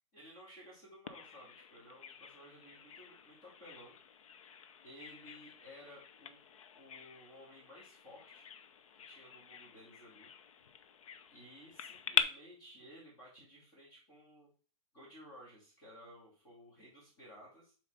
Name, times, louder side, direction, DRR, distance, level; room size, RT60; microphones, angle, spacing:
voice 1, 0.1-3.9 4.8-6.4 6.7-8.5 9.0-10.3 11.3-14.5 14.9-17.7, equal, 25° left, -5 dB, 2.4 m, -56 dB
Bird vocalization bird call bird song, 1.1-12.2, left 7 dB, 75° left, 0.7 m, -43 dB
5.5 x 4.2 x 5.0 m, 0.38 s
supercardioid pair, 175°, 17 cm